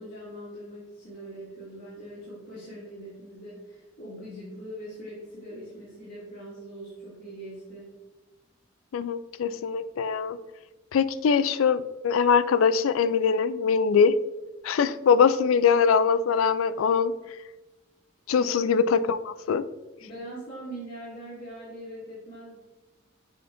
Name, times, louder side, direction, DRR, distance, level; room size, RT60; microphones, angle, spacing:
voice 1, 0.0-8.0 18.3-18.5 20.0-22.6, right 1 dB, 45° left, -10 dB, 2.2 m, -42 dB
voice 2, 8.9-10.4 10.9-14.1 14.6-17.1 18.3-19.6, left 6 dB, 80° left, 14 dB, 0.4 m, -22 dB
7.8 x 5.1 x 2.6 m, 1.1 s
head